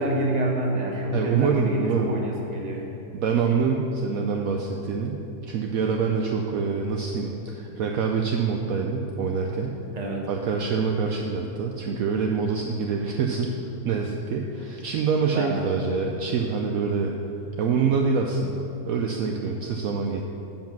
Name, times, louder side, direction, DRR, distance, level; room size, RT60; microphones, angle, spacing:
voice 1, 0.0-2.9 10.0-10.3 15.3-15.8, right 1 dB, 30° right, -1 dB, 1.2 m, -27 dB
voice 2, 1.1-2.1 3.1-9.8 10.3-13.6 13.8-17.1 17.6-20.2, right 5 dB, 70° right, 1 dB, 1.0 m, -25 dB
7.7 x 7.1 x 5.9 m, 3.0 s
omnidirectional pair, 1.7 m